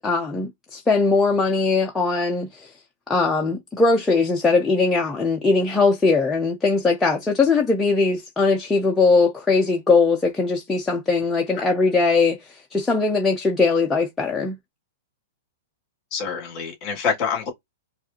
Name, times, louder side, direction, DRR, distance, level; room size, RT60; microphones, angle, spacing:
voice 1, 0.0-2.7 3.1-14.6, left 3 dB, 10° left, 0.6 m, -20 dB
voice 2, 16.1-17.5, left 6 dB, 30° left, 2.4 m, -26 dB
4.8 x 2.5 x 2.9 m
hypercardioid pair, 155°, 0 cm